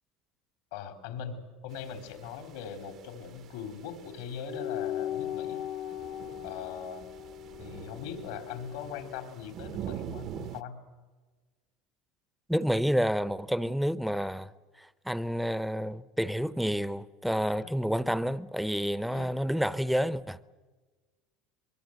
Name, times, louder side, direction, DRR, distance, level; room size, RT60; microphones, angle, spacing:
voice 1, 0.7-5.6 6.4-7.1 7.6-10.9 17.5-17.7 19.1-19.3, left 7 dB, 85° left, 3.8 m, -40 dB
sound 1, 1.7-10.6, right 11 dB, 45° right, 0.8 m, -45 dB
sound 2, 4.4-9.3, left 11 dB, 45° left, 0.9 m, -38 dB
voice 2, 12.5-14.5 14.8-20.5, equal, ahead, 0.7 m, -29 dB
24.0 x 22.5 x 8.0 m
cardioid pair, 140°, 0 cm